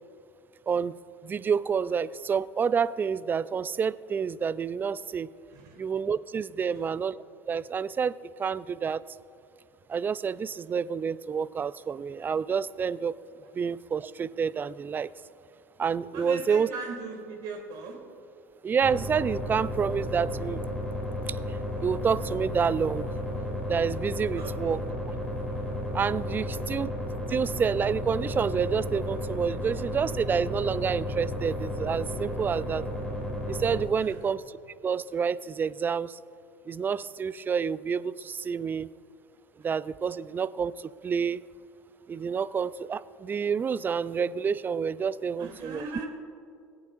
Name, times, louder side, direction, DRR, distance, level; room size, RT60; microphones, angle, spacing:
voice 1, 1.2-5.3 5.8-7.2 7.5-8.1 8.4-9.0 9.9-13.1 13.5-15.1 15.8-16.7 18.6-20.6 21.3-23.1 23.7-24.8 25.9-26.9 27.3-32.8 33.5-34.4 34.8-36.2 36.7-38.9 39.6-41.4 42.1-45.8, right 6 dB, 25° right, 18 dB, 0.3 m, -28 dB
voice 2, 16.1-18.0 24.4-24.7 26.3-26.7 34.0-34.3 45.4-46.1, right 4 dB, 60° right, 2 dB, 2.3 m, -40 dB
sound 1, 18.8-33.8, left 1 dB, 5° left, 2.3 m, -33 dB
20.5 x 8.6 x 2.5 m, 2.5 s
hypercardioid pair, 75°, 8 cm